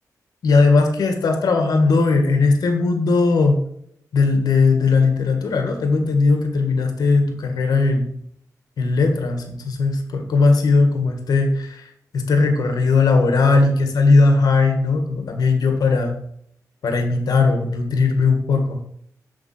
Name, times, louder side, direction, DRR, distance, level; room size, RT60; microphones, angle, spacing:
voice 1, 0.4-3.6 4.1-8.1 8.8-11.9 12.1-16.1 16.8-18.8, left 3 dB, 90° left, 5 dB, 1.7 m, -18 dB
7.4 x 7.2 x 5.6 m, 0.70 s
wide cardioid pair, 130°, 6 cm